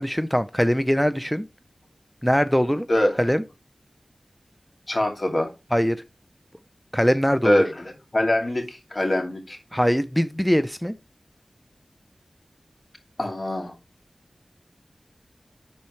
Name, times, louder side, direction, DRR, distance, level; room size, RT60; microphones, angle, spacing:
voice 1, 0.0-1.5 2.2-2.9 3.2-3.4 5.7-6.0 6.9-7.6 9.7-10.9, equal, 5° left, 0.5 m, -22 dB
voice 2, 2.9-3.2 4.9-5.5 7.4-9.6 13.2-13.7, left 1 dB, 50° left, 2.5 m, -23 dB
11.0 x 4.3 x 3.1 m
wide cardioid pair, 45°, 0 cm